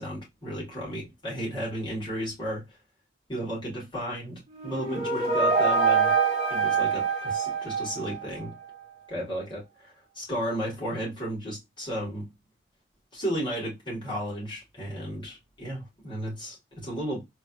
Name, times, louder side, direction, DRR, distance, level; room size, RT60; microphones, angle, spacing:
voice 1, 0.0-2.6 3.3-6.2 6.5-8.5 9.1-12.3 13.1-17.2, equal, 25° left, 2.5 m, -34 dB
sound 1, 4.5-8.4, right 5 dB, 35° right, 1.5 m, -25 dB
4.4 x 2.9 x 2.4 m
head